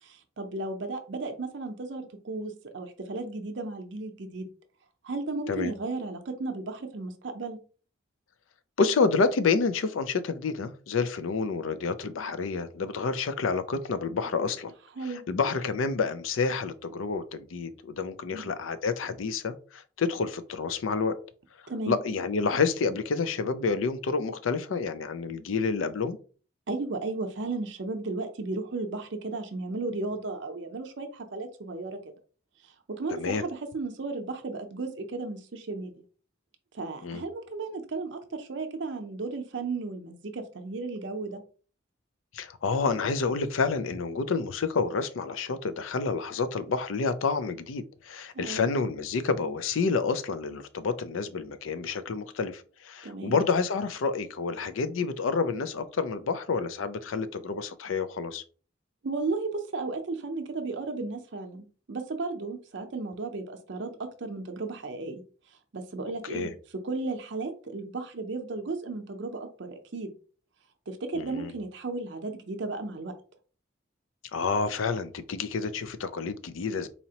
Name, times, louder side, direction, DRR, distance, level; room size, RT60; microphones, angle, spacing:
voice 1, 0.0-4.5 5.0-7.6 15.0-15.2 18.3-18.4 21.7-22.0 26.7-32.1 32.6-36.0 36.7-41.4 48.3-48.7 53.0-53.3 59.0-63.9 64.2-65.2 65.7-66.5 66.8-70.1 70.9-73.1, right 3 dB, 65° right, 6 dB, 0.6 m, -34 dB
voice 2, 8.8-14.7 15.0-21.2 21.9-26.2 33.1-33.4 37.0-37.2 42.3-58.4 66.3-66.5 71.1-71.5 74.3-76.9, left 4 dB, 90° left, 11 dB, 0.5 m, -29 dB
4.1 x 2.8 x 2.8 m, 0.38 s
head